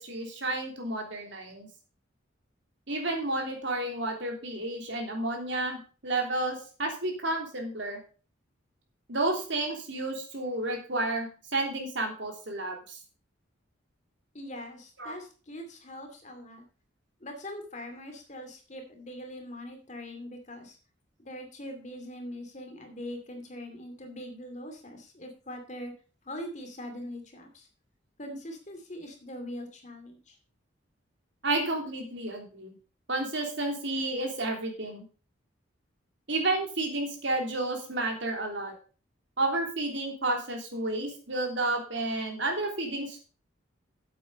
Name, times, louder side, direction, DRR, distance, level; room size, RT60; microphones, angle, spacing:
voice 1, 0.0-1.7 2.9-8.0 9.1-13.0 15.0-15.1 31.4-32.7 33.1-35.0 36.3-38.7 39.4-43.2, right 2 dB, 65° right, 2 dB, 3.2 m, -31 dB
voice 2, 14.3-16.6 17.2-20.8 21.2-25.9 26.3-27.7 28.2-30.4, left 1 dB, 35° left, 4 dB, 2.4 m, -42 dB
8.6 x 8.2 x 5.3 m, 0.36 s
head